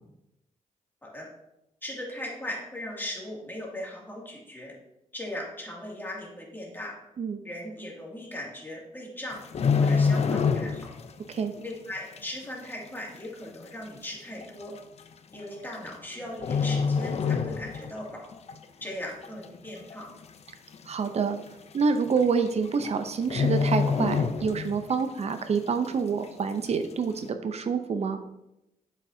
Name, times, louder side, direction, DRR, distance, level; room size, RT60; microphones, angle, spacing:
voice 1, 1.8-4.7 5.1-6.9 7.4-9.4 9.8-10.9 11.6-14.7 15.3-18.2 18.8-20.1, left 1 dB, 15° left, -3 dB, 2.4 m, -38 dB
sound 1, 9.3-11.1 11.3-11.6 12.2-12.3 13.1-13.2 13.5-13.6 14.4-14.6 15.7-16.1 16.4-18.0 18.3-18.5 19.0-19.6 19.9-20.0 20.2-20.3 20.7-20.8 21.8-21.9 22.2-22.5 22.7-22.9 23.2-24.9 25.3-25.4, left 5 dB, 50° left, 0.5 m, -26 dB
voice 2, 20.9-21.4 21.7-28.2, right 5 dB, 50° right, 8 dB, 0.7 m, -27 dB
7.5 x 6.4 x 2.7 m, 0.90 s
cardioid pair, 85°, 14 cm